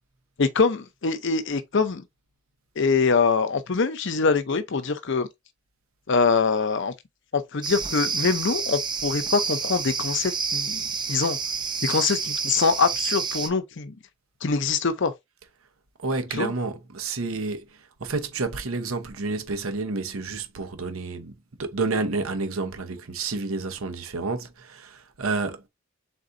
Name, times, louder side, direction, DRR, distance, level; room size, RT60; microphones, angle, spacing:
voice 1, 0.4-2.1 2.8-5.3 6.1-6.9 7.3-11.4 11.8-13.9 14.4-15.1 16.4-16.5, left 4 dB, 60° left, 0.6 m, -24 dB
sound 1, 7.6-13.5, right 5 dB, 20° right, 0.6 m, -29 dB
voice 2, 16.0-21.3 21.6-25.7, right 3 dB, 85° right, 0.9 m, -30 dB
4.0 x 3.8 x 2.6 m
head